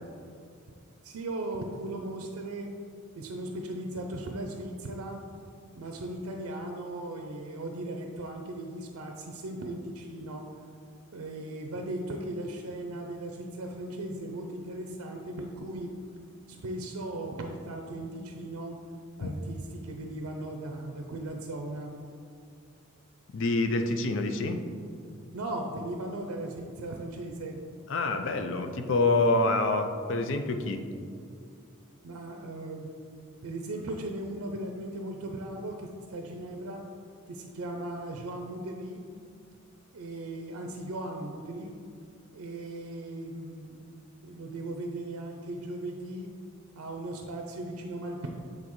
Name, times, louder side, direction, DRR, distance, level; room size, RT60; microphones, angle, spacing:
voice 1, 1.0-2.7 3.2-5.2 5.7-10.5 11.1-15.9 16.5-18.7 19.2-21.9 25.3-27.6 32.0-32.9 33.4-36.9 37.3-39.0 39.9-41.7 42.3-43.8 44.2-46.3 46.7-48.3, right 1 dB, 85° right, 3 dB, 0.5 m, -37 dB
voice 2, 23.3-24.6 27.9-30.9, left 2 dB, 60° left, 6 dB, 0.4 m, -27 dB
8.4 x 3.8 x 3.1 m, 2.3 s
head